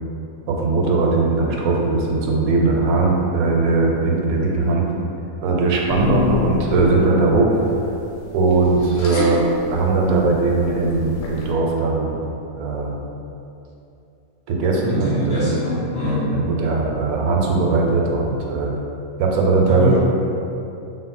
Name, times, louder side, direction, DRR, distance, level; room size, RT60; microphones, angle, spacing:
voice 1, 0.5-4.9 5.4-7.5 8.3-12.2 12.6-12.9 14.5-15.5 16.0-18.7 19.2-20.0, right 3 dB, 80° right, -1 dB, 1.0 m, -19 dB
sound 1, 5.8-11.5, left 2 dB, 85° left, 1.1 m, -34 dB
voice 2, 5.9-6.3 14.9-16.3 19.7-20.0, left 2 dB, 55° left, -8 dB, 1.1 m, -23 dB
3.9 x 2.0 x 4.0 m, 2.7 s
omnidirectional pair, 1.5 m